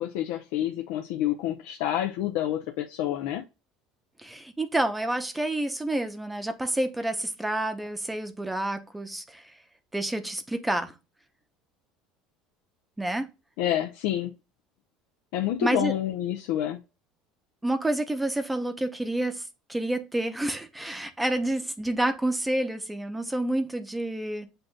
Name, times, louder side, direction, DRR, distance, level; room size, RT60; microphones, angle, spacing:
voice 1, 0.0-3.4 13.6-14.3 15.3-16.8, left 12 dB, 75° left, 0.6 m, -28 dB
voice 2, 4.2-9.4 9.9-10.9 13.0-13.3 15.6-15.9 17.6-19.4 19.7-24.5, right 1 dB, 10° right, 0.7 m, -29 dB
7.8 x 2.6 x 2.3 m
supercardioid pair, 115°, 0 cm